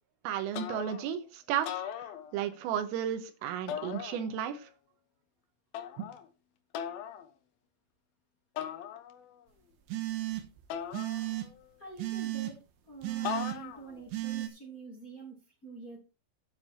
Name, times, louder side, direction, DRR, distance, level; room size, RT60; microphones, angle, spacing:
voice 1, 0.3-1.7 2.3-4.6 6.0-6.1, right 9 dB, 90° right, 8 dB, 3.9 m, -33 dB
sound 1, 0.5-1.2 1.6-2.7 3.7-4.6 5.7-6.3 6.7-7.3 8.6-9.4 10.7-11.7 13.3-14.0, left 9 dB, 85° left, 2.1 m, -39 dB
sound 2, 9.9-10.6 10.9-11.5 12.0-12.5 13.0-13.6 14.1-14.5, right 17 dB, 70° right, 3.4 m, -34 dB
voice 2, 11.8-12.6 12.9-16.0, right 4 dB, 20° left, -2 dB, 2.4 m, -47 dB
9.6 x 8.9 x 4.5 m, 0.29 s
omnidirectional pair, 5.9 m